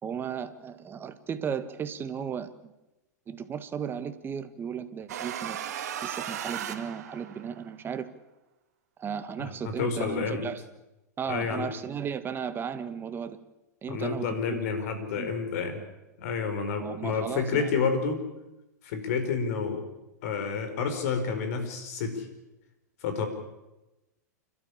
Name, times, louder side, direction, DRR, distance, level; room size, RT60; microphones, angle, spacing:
voice 1, 0.0-2.7 3.3-5.6 6.0-8.1 9.0-10.6 11.2-13.4 13.8-14.6 15.2-15.3 16.8-17.7, right 7 dB, 25° right, 10 dB, 1.7 m, -35 dB
sound 1, 5.1-7.6, right 10 dB, 65° right, 2.1 m, -36 dB
voice 2, 9.4-10.5 11.3-11.7 13.9-15.8 16.2-18.2 18.8-19.8 20.2-22.3 23.0-23.3, left 5 dB, 60° left, 8 dB, 4.9 m, -29 dB
29.0 x 13.0 x 8.6 m, 1.0 s
hypercardioid pair, 105°, 9 cm